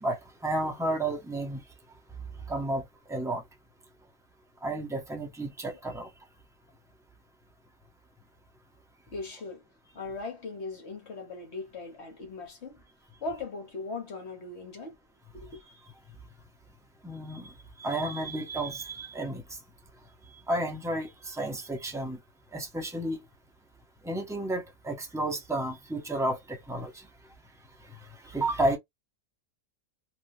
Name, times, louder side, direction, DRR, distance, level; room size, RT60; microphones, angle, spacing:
voice 1, 0.0-1.6 2.5-3.4 4.6-6.1 17.0-17.5 17.8-19.4 20.5-22.2 22.5-23.2 24.0-27.1 28.2-28.8, right 1 dB, 5° right, 0.4 m, -32 dB
voice 2, 9.1-9.6 9.9-12.8 13.2-15.0 15.3-15.6, left 3 dB, 55° left, 1.4 m, -39 dB
3.1 x 2.3 x 2.7 m
omnidirectional pair, 1.5 m